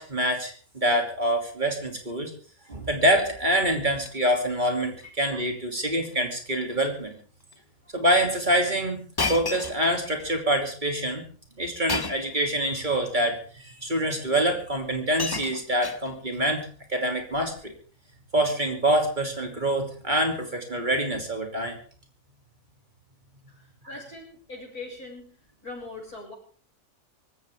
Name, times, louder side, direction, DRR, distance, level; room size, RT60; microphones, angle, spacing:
voice 1, 0.0-2.3 2.7-7.1 7.9-11.2 11.6-17.7 18.3-21.8 23.8-24.0, right 1 dB, 30° right, 3 dB, 3.2 m, -26 dB
Shatter, 2.8-3.3 3.6-4.1 4.4-4.7 5.0-5.1 5.9-6.2 6.5-6.8 7.5-7.6 9.2-10.3 11.9-12.4 13.4-13.5 14.5-14.6 14.9-16.4 17.3-17.6, left 4 dB, 30° left, 0.5 m, -33 dB
voice 2, 23.5-25.3 25.6-26.3, left 3 dB, 90° left, -1 dB, 7.3 m, -41 dB
25.0 x 13.5 x 3.7 m, 0.42 s
omnidirectional pair, 1.5 m